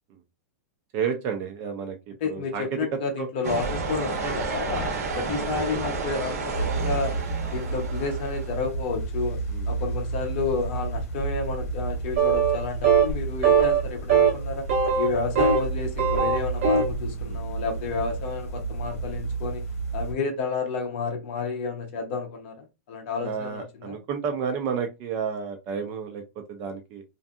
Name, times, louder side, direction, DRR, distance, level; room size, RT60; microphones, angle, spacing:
voice 1, 0.9-2.8 3.2-3.3 4.8-5.0 9.5-9.7 17.2-17.5 23.2-27.0, right 6 dB, 25° right, 0.3 m, -31 dB
voice 2, 2.2-7.1 7.5-9.4 9.7-14.7 15.0-19.6 19.9-24.0, left 4 dB, 40° left, 0.8 m, -31 dB
sound 1, 3.4-8.6, right 3 dB, 85° right, 0.8 m, -31 dB
sound 2, 6.5-20.1, right 4 dB, 65° left, 0.9 m, -31 dB
sound 3, 12.2-12.6 12.8-13.1 13.4-13.8 14.1-14.3 14.7-15.7 15.9-16.9, right 6 dB, 55° right, 1.1 m, -20 dB
2.6 x 2.5 x 2.3 m
supercardioid pair, 175°, 8 cm